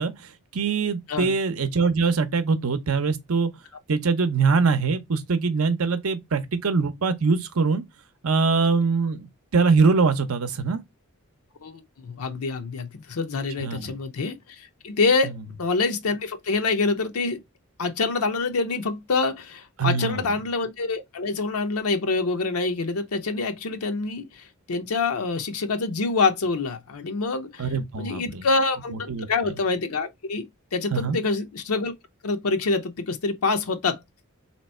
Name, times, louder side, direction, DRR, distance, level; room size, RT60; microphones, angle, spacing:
voice 1, 0.0-3.5 3.9-7.8 8.2-10.8 13.6-14.0 19.8-20.2 27.6-28.4 29.1-29.3 30.9-31.2, right 4 dB, 75° right, 0.7 m, -23 dB
voice 2, 11.6-17.4 17.8-27.7 28.0-30.5 30.7-31.9 32.2-34.0, left 3 dB, 80° left, 0.6 m, -26 dB
3.4 x 2.9 x 4.1 m
head